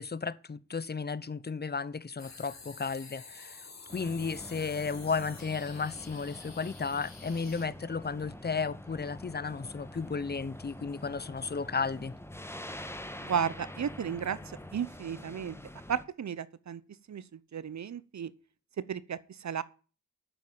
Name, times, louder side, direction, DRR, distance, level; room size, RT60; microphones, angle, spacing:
voice 1, 0.0-3.6 3.9-12.1, left 5 dB, 30° left, 0.9 m, -34 dB
sound 1, 2.2-7.7, left 4 dB, 55° left, 4.2 m, -50 dB
sound 2, 3.9-16.0, left 1 dB, 10° left, 1.5 m, -46 dB
voice 2, 13.2-14.4 14.7-15.6 15.9-16.8 17.1-17.2 17.5-18.3 18.9-19.6, right 8 dB, 60° right, 0.9 m, -33 dB
8.8 x 7.7 x 8.7 m
cardioid pair, 55°, 32 cm